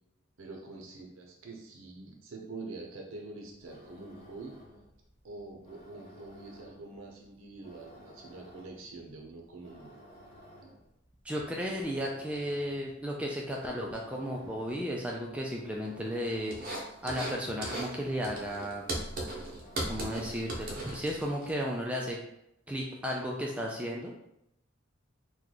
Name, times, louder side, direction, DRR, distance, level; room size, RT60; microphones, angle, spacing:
voice 1, 0.4-4.6 5.2-9.9, right 3 dB, 80° right, 1 dB, 0.6 m, -45 dB
sound 1, 3.5-21.0, equal, 30° left, 0.9 m, -55 dB
voice 2, 11.2-16.7 17.0-18.9 19.8-22.2 22.7-24.1, equal, 5° right, -2 dB, 0.3 m, -34 dB
sound 2, 16.5-17.4 17.6-17.9 18.2-21.5, right 1 dB, 45° right, 0.7 m, -37 dB
3.0 x 2.2 x 3.8 m, 0.81 s
head